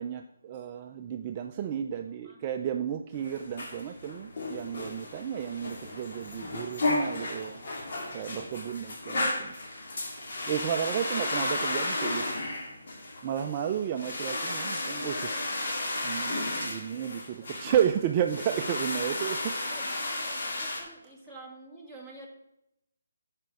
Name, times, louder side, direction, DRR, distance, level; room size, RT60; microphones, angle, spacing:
voice 1, 0.0-7.6 8.1-9.5 10.5-12.4 13.2-15.3 16.0-19.4, right 9 dB, 25° right, 5 dB, 0.4 m, -32 dB
voice 2, 1.9-2.4 5.3-5.5 17.4-17.5 19.1-22.3, right 2 dB, 5° left, -4 dB, 1.8 m, -50 dB
sound 1, 3.1-20.8, left 2 dB, 55° left, 2.1 m, -33 dB
9.7 x 5.1 x 4.7 m, 0.82 s
figure-of-eight pair, 155°, 0 cm